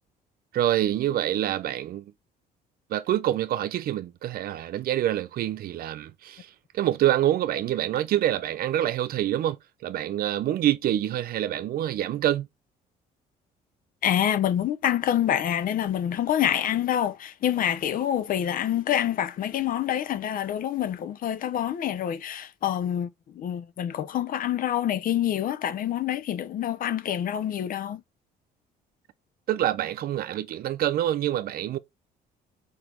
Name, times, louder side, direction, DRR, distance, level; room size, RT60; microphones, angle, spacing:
voice 1, 0.5-2.0 2.9-6.5 6.7-9.6 9.8-12.5 29.5-31.8, right 12 dB, 60° right, 0.7 m, -26 dB
voice 2, 14.0-28.0, left 10 dB, 55° left, 0.8 m, -27 dB
5.1 x 4.5 x 4.5 m
cardioid pair, 110°, 17 cm